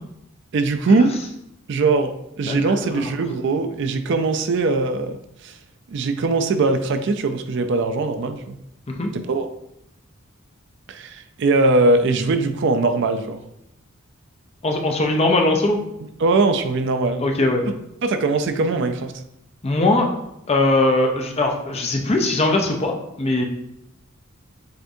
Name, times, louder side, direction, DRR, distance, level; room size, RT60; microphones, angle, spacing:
voice 1, 0.5-1.2 1.7-5.2 5.4-5.6 5.9-8.6 9.1-9.5 10.9-13.4 16.2-17.3 17.7-17.8 18.0-19.2, right 3 dB, 55° right, 8 dB, 0.4 m, -21 dB
voice 2, 2.4-3.1 8.9-9.1 14.6-15.8 17.2-17.6 19.6-20.1 20.5-23.4, left 2 dB, 30° left, 2 dB, 0.5 m, -20 dB
7.8 x 2.6 x 2.6 m, 0.81 s
head